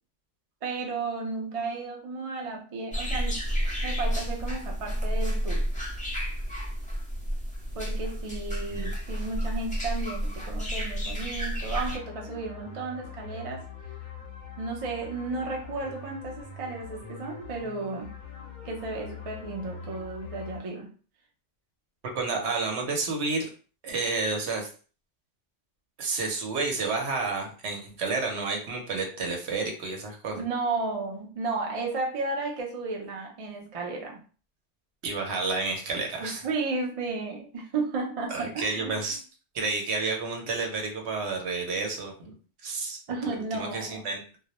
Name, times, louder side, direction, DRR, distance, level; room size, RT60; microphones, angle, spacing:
voice 1, 0.6-5.7 7.7-13.6 14.6-18.2 18.6-20.9 30.3-34.2 36.2-38.9 43.1-44.1, right 3 dB, 50° right, 0 dB, 0.4 m, -33 dB
sound 1, 2.9-12.0, equal, 10° left, 0.5 m, -30 dB
sound 2, 11.7-20.6, left 5 dB, 55° left, 0.6 m, -43 dB
voice 2, 22.1-23.5 23.8-24.7 26.0-30.4 35.0-36.4 38.3-39.2 39.5-42.3 42.6-43.0 43.3-44.2, right 3 dB, 70° right, 2 dB, 0.9 m, -30 dB
2.2 x 2.0 x 2.8 m, 0.39 s
omnidirectional pair, 1.2 m